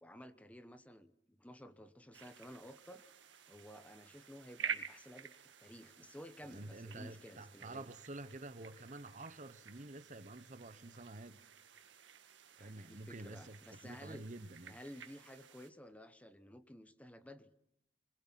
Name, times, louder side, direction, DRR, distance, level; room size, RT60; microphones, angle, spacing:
voice 1, 0.0-3.0 3.5-7.9 12.6-14.3 14.7-17.5, equal, 10° left, 0.9 m, -54 dB
sound 1, 2.1-15.7, right 7 dB, 90° right, 1.7 m, -50 dB
voice 2, 6.5-11.4 12.6-14.8, right 2 dB, 40° right, 1.0 m, -49 dB
24.5 x 21.0 x 5.9 m
head